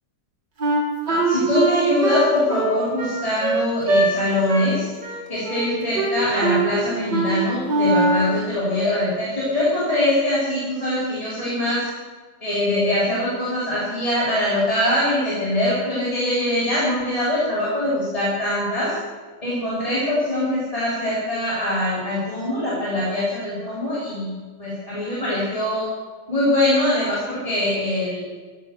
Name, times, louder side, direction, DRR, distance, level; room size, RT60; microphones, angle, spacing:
Wind instrument woodwind instrument, 0.6-4.1 4.5-4.7 5.0-5.7 5.9-6.7 7.1-7.3 7.6-8.4, right 2 dB, 65° right, 3.0 m, -22 dB
voice 1, 1.1-4.9 5.3-11.9 12.4-19.0 19.4-24.3 24.6-25.9 26.3-28.3, left 1 dB, 20° left, -9 dB, 3.8 m, -23 dB
15.5 x 9.9 x 6.7 m, 1.4 s
omnidirectional pair, 2.0 m